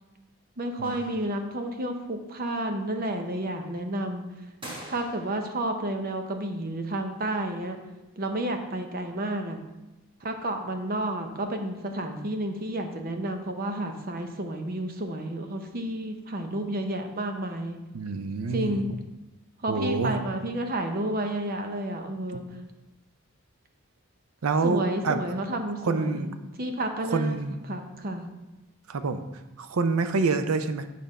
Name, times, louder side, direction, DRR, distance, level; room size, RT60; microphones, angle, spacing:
voice 1, 0.6-4.3 4.9-7.8 8.2-9.6 10.2-17.8 18.5-18.9 19.6-22.5 24.6-27.4 27.7-28.3, right 1 dB, 45° right, 5 dB, 0.7 m, -31 dB
sound 1, 0.8-1.8 4.6-5.6, right 1 dB, 25° right, 1.1 m, -44 dB
voice 2, 17.9-18.8 19.7-20.2 24.4-25.2 25.8-26.3 27.1-27.6 28.9-29.2 29.6-30.8, right 4 dB, 85° right, 9 dB, 0.5 m, -27 dB
8.8 x 3.4 x 5.3 m, 1.0 s
head